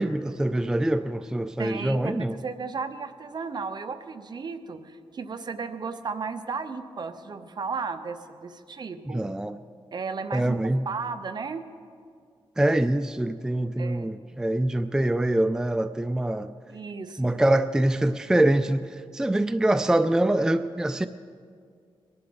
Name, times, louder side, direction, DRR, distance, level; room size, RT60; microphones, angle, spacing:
voice 1, 0.0-2.4 9.0-9.6 10.3-10.9 12.6-16.5 17.2-21.1, right 1 dB, 5° right, 11 dB, 0.3 m, -24 dB
voice 2, 1.6-9.2 9.9-10.6 10.9-11.6 13.8-14.1 16.7-17.3, right 5 dB, 50° right, 9 dB, 0.9 m, -34 dB
22.5 x 11.0 x 3.9 m, 2.2 s
cardioid pair, 95°, 10 cm